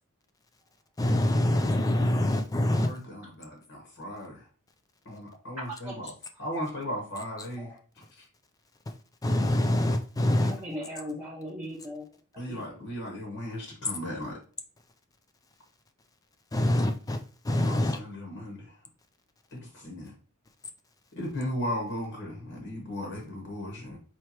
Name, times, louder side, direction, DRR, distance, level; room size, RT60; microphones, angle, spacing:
voice 1, 1.0-2.9 9.2-10.6 16.5-18.0, left 1 dB, 15° left, 6 dB, 0.4 m, -25 dB
voice 2, 2.7-4.5 5.0-6.1 6.4-7.8 8.2-8.3 12.4-14.4 17.7-18.7 19.5-20.1 21.1-24.0, equal, 60° left, 0 dB, 1.2 m, -36 dB
voice 3, 10.4-12.0 12.3-12.6, equal, 10° right, -6 dB, 0.7 m, -38 dB
4.6 x 3.2 x 2.9 m, 0.40 s
head